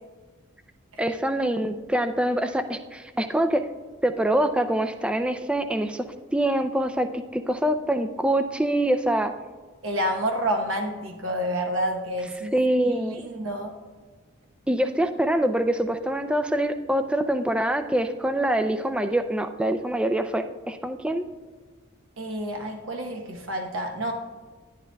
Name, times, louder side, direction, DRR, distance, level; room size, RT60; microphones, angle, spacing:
voice 1, 1.0-3.7 4.0-6.1 6.3-9.3 12.5-13.3 14.7-21.3, right 1 dB, 5° right, 8 dB, 0.3 m, -25 dB
voice 2, 9.8-12.6 12.9-13.7 22.2-24.1, equal, 70° right, 3 dB, 0.9 m, -29 dB
11.0 x 10.5 x 2.3 m, 1.4 s
head